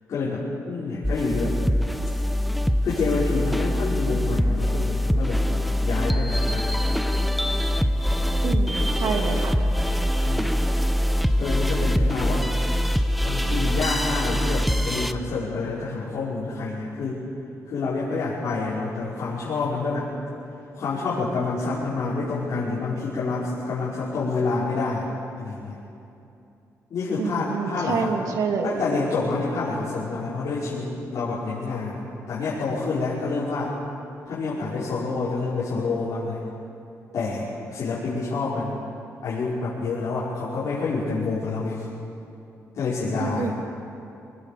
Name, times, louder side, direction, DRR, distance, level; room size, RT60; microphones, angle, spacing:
voice 1, 0.1-1.5 2.8-5.5 5.8-6.7 9.0-9.1 10.2-10.5 11.4-12.5 13.2-17.2 17.7-20.1 20.7-25.1 25.4-25.8 26.9-28.1 28.6-32.0 32.3-33.7 34.3-36.4 37.1-38.8 39.2-41.8 42.7-43.5, left 3 dB, 60° left, -9 dB, 5.7 m, -28 dB
sound 1, 1.0-15.1, equal, ahead, 0.9 m, -23 dB
voice 2, 8.4-9.6 27.2-28.8 43.2-43.5, right 5 dB, 75° right, 3 dB, 2.8 m, -27 dB
25.5 x 20.5 x 7.1 m, 2.7 s
cardioid pair, 115°, 6 cm